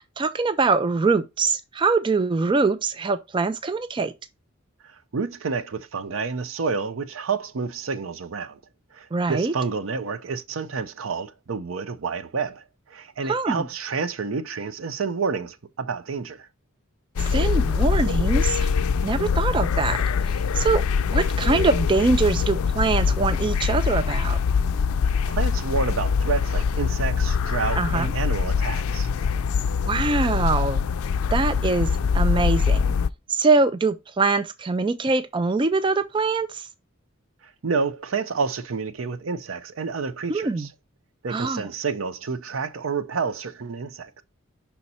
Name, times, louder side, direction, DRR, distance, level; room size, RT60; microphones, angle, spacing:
voice 1, 0.0-4.1 9.1-9.5 13.3-13.7 17.2-18.7 19.0-20.0 20.5-24.4 27.8-28.1 29.8-30.9 31.3-32.8 33.3-36.7 40.3-40.7 41.3-41.7, right 4 dB, 25° right, 0.3 m, -23 dB
voice 2, 4.8-8.6 8.9-16.5 25.3-29.1 37.6-40.7 41.2-44.2, right 5 dB, 70° right, 0.6 m, -29 dB
sound 1, 17.2-33.1, left 6 dB, 90° left, 0.4 m, -23 dB
5.6 x 4.2 x 4.1 m
head